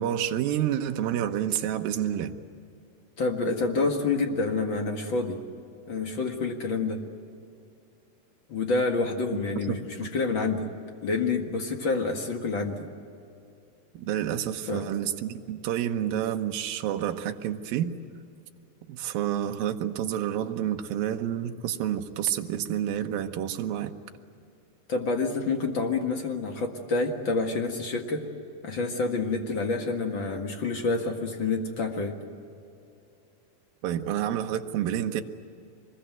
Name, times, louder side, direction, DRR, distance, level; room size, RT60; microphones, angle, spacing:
voice 1, 0.0-2.3 9.3-9.4 9.7-10.1 13.9-17.9 18.9-23.9 33.8-35.2, right 10 dB, 70° right, 5 dB, 2.7 m, -29 dB
voice 2, 3.2-5.4 5.9-7.0 8.5-10.7 11.0-12.9 14.7-14.8 24.9-28.3 28.6-32.1, left 3 dB, 45° left, 3 dB, 1.8 m, -28 dB
25.5 x 21.5 x 9.2 m, 2.5 s
omnidirectional pair, 4.5 m